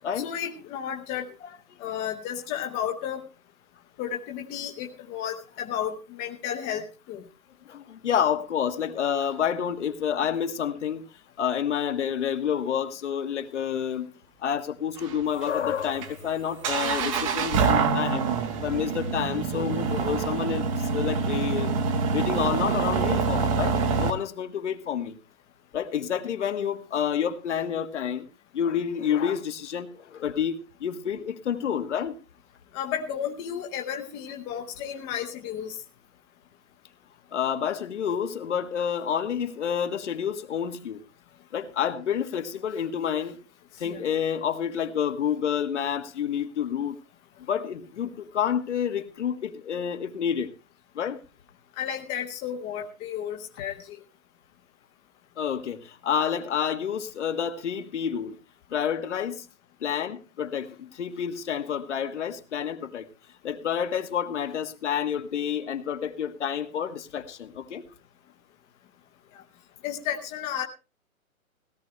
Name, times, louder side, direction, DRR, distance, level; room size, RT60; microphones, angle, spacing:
voice 1, 0.1-1.3 1.8-3.2 4.0-6.8 7.1-7.2 32.7-35.7 43.8-44.0 51.8-54.0 69.8-70.7, left 9 dB, 15° left, 0.9 m, -32 dB
voice 2, 7.7-11.1 11.4-14.1 14.4-18.3 18.6-21.7 22.1-25.2 25.7-28.2 28.5-32.2 37.3-41.0 41.5-43.4 43.8-46.9 47.5-50.5 50.9-51.2 55.4-58.3 58.7-59.5 59.8-63.1 63.4-67.8, left 8 dB, 55° left, 1.6 m, -29 dB
sound 1, 15.0-24.1, right 5 dB, 25° right, 1.0 m, -26 dB
17.0 x 13.0 x 3.3 m
hypercardioid pair, 150°, 42 cm